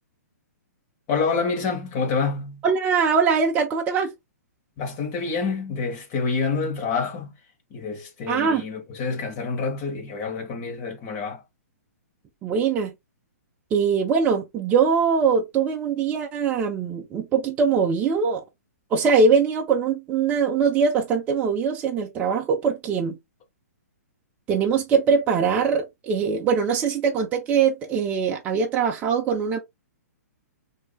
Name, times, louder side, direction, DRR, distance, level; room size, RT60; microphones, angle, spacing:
voice 1, 1.1-2.6 4.8-7.3 7.7-11.4, left 4 dB, 30° left, 1.5 m, -27 dB
voice 2, 2.6-4.1 8.3-8.7 12.4-12.9 13.7-18.4 18.9-23.2 24.5-29.6, right 5 dB, 15° right, 0.5 m, -22 dB
4.6 x 2.7 x 2.2 m
hypercardioid pair, 150°, 9 cm